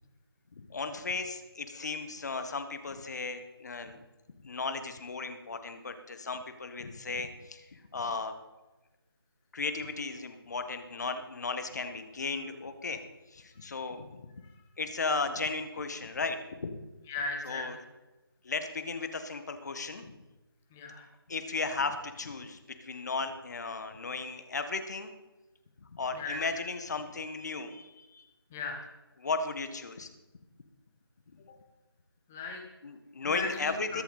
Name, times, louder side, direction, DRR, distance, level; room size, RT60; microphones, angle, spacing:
voice 1, 0.5-4.0 4.4-8.3 9.5-13.0 13.3-14.3 14.8-16.7 17.4-17.7 18.4-20.2 21.3-25.1 25.8-28.3 29.2-30.1 31.3-31.4 32.8-34.0, left 4 dB, 45° left, 8 dB, 1.5 m, -35 dB
voice 2, 17.1-17.7 20.7-21.1 26.1-26.4 28.5-28.9 32.3-32.6 33.2-34.0, left 3 dB, 5° left, 1 dB, 0.3 m, -37 dB
21.5 x 8.1 x 4.1 m, 1.1 s
figure-of-eight pair, 160°, 13 cm